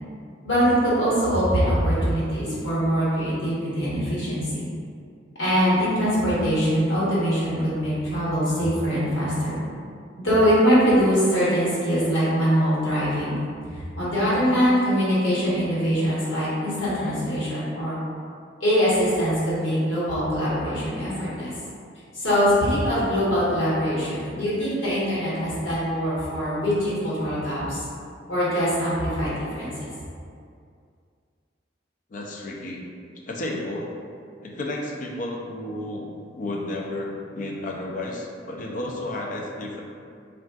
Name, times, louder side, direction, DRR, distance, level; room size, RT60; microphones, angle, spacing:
voice 1, 0.4-4.7 5.4-9.6 10.2-13.4 13.7-18.0 18.6-21.5 22.1-27.8 28.3-29.9, equal, 85° left, -10 dB, 1.2 m, -23 dB
voice 2, 32.1-32.9 33.3-33.9 34.4-39.8, left 1 dB, 45° left, -1 dB, 0.3 m, -32 dB
3.5 x 2.4 x 2.3 m, 2.3 s
head